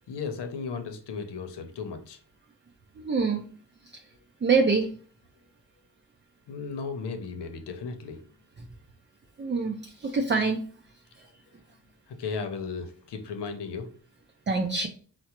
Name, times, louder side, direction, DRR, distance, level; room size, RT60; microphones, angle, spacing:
voice 1, 0.1-2.2 6.5-8.2 12.1-13.9, left 5 dB, 80° left, 7 dB, 0.7 m, -35 dB
voice 2, 3.0-3.4 4.4-4.9 9.4-9.8 10.0-10.7 14.5-14.9, right 4 dB, 30° right, 4 dB, 0.5 m, -24 dB
4.5 x 2.0 x 2.9 m, 0.44 s
cardioid pair, 55°, 40 cm